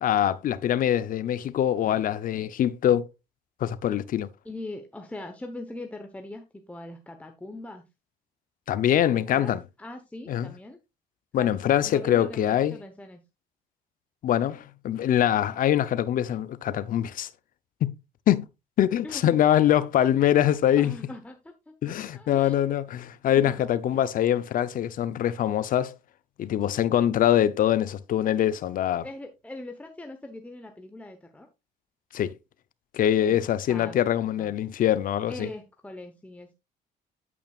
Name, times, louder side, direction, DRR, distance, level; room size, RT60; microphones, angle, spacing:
voice 1, 0.0-3.1 3.6-4.3 8.7-9.6 10.3-10.5 11.3-12.8 14.2-17.3 17.8-17.9 18.3-18.5 18.8-20.9 21.8-25.9 26.4-29.0 32.1-32.3 32.9-35.5, left 11 dB, 55° left, 0.7 m, -23 dB
voice 2, 4.4-7.8 9.1-10.8 11.3-13.2 19.0-19.4 20.7-22.6 23.4-23.7 29.0-31.5 33.2-33.4 33.7-33.9 34.4-34.5 35.3-36.5, left 2 dB, 10° left, 1.0 m, -41 dB
8.8 x 8.5 x 2.4 m
cardioid pair, 110°, 17 cm